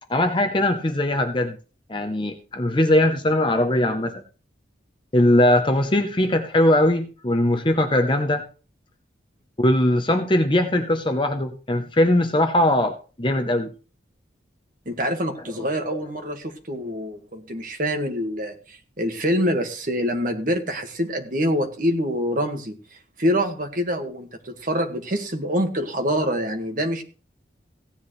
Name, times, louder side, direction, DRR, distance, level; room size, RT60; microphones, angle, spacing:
voice 1, 0.1-1.6 1.9-4.2 5.1-8.4 9.6-13.7 15.9-16.0, left 1 dB, 25° left, 6 dB, 0.8 m, -20 dB
voice 2, 14.9-22.8 23.2-27.0, equal, 45° right, 5 dB, 1.8 m, -25 dB
16.0 x 10.0 x 3.2 m, 0.37 s
head